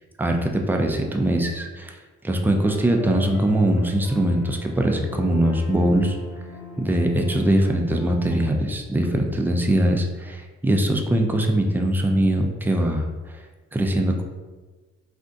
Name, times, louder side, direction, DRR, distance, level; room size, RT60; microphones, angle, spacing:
voice 1, 0.2-2.0 2.2-6.2 6.8-13.1 13.7-14.2, right 1 dB, 5° right, 3 dB, 0.3 m, -21 dB
sound 1, 2.4-8.5, left 4 dB, 85° left, 0.5 m, -40 dB
2.5 x 2.3 x 3.8 m, 1.3 s
cardioid pair, 90°, 30 cm